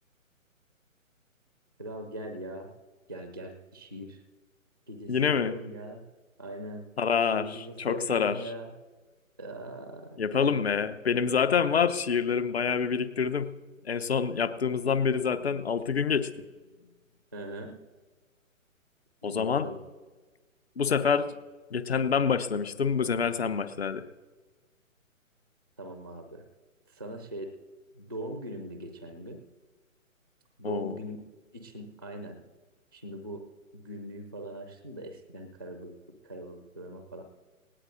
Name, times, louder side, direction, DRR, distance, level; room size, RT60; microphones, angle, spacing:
voice 1, 1.8-2.7 3.1-4.2 4.9-6.0 6.4-6.9 7.3-8.7 9.4-10.8 17.3-17.8 19.2-19.8 25.8-26.5 26.9-27.6 27.9-29.4 30.6-31.2 31.5-32.4 32.9-33.5 33.7-36.0 36.2-37.2, right 1 dB, 15° right, 7 dB, 0.5 m, -41 dB
voice 2, 5.1-5.6 7.0-8.5 10.2-13.5 13.8-16.4 19.2-19.7 20.8-21.3 21.7-24.1 30.6-31.0, left 6 dB, 50° left, 13 dB, 0.9 m, -27 dB
19.0 x 18.0 x 2.6 m, 1.3 s
figure-of-eight pair, 135°, 41 cm